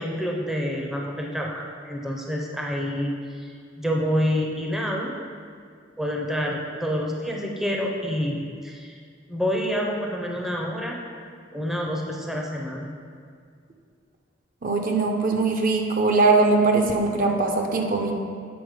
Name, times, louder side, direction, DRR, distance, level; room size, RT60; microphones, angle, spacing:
voice 1, 0.0-5.2 6.0-8.9 9.3-11.0 11.5-12.9, equal, ahead, -1 dB, 0.6 m, -28 dB
voice 2, 14.6-18.1, right 3 dB, 45° right, 2 dB, 0.7 m, -21 dB
8.0 x 4.0 x 5.0 m, 2.2 s
head